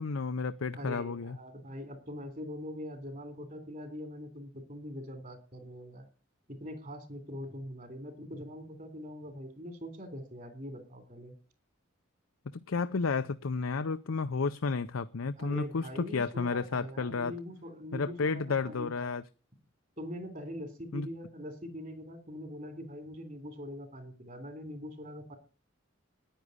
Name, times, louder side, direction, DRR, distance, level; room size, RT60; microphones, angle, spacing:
voice 1, 0.0-1.4 12.5-17.3 17.9-19.2 20.9-21.1, left 4 dB, 85° left, 0.6 m, -32 dB
voice 2, 0.7-6.1 6.5-11.4 15.4-19.2 20.0-25.3, equal, 40° right, 3.4 m, -43 dB
10.0 x 9.9 x 9.5 m
head